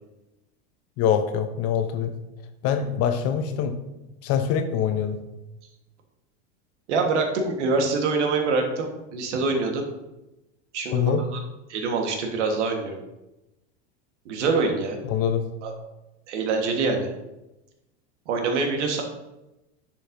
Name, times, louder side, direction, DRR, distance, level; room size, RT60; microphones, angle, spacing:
voice 1, 1.0-2.1 2.6-3.8 4.2-5.2 10.9-11.2 15.0-15.5, left 8 dB, 45° left, 8 dB, 0.8 m, -24 dB
voice 2, 6.9-9.8 10.7-11.4 11.7-13.0 14.2-15.0 15.6-15.7 16.3-17.1 18.3-19.0, right 3 dB, 85° right, 3 dB, 1.5 m, -25 dB
10.5 x 4.8 x 2.7 m, 0.96 s
supercardioid pair, 120°, 35 cm